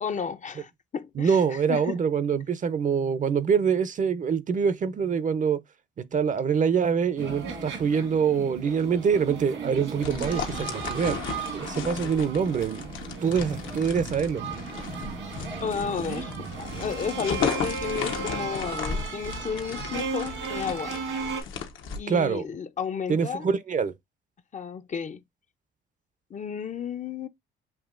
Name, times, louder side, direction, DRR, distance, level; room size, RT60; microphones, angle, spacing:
voice 1, 0.0-2.0 15.6-21.0 22.0-23.5 24.5-25.2 26.3-27.3, left 6 dB, 40° left, 0.5 m, -33 dB
voice 2, 1.2-5.6 6.0-11.2 11.5-12.9 13.2-14.4 22.1-22.5 23.1-23.9, right 6 dB, 40° right, 0.5 m, -25 dB
sound 1, 7.2-21.4, right 5 dB, 80° right, 1.6 m, -35 dB
sound 2, 10.0-22.0, left 6 dB, 80° left, 0.9 m, -35 dB
7.0 x 2.8 x 2.4 m
cardioid pair, 90°, 20 cm